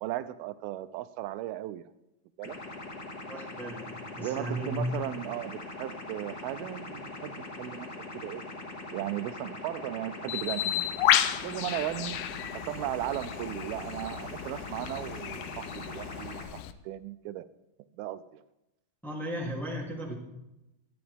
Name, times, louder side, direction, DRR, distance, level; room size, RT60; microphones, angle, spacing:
voice 1, 0.0-1.8 2.4-2.6 4.2-7.9 8.1-8.4 8.9-10.9 11.4-12.2 12.5-17.5 17.9-18.4, right 14 dB, 90° right, 13 dB, 2.5 m, -36 dB
sound 1, 2.4-16.4, left 2 dB, 35° left, 1.8 m, -42 dB
voice 2, 3.3-5.0 19.0-20.1, equal, ahead, -2 dB, 2.2 m, -35 dB
Bird, 10.3-16.7, left 12 dB, 80° left, 2.3 m, -32 dB
23.0 x 11.0 x 3.6 m, 0.91 s
omnidirectional pair, 4.3 m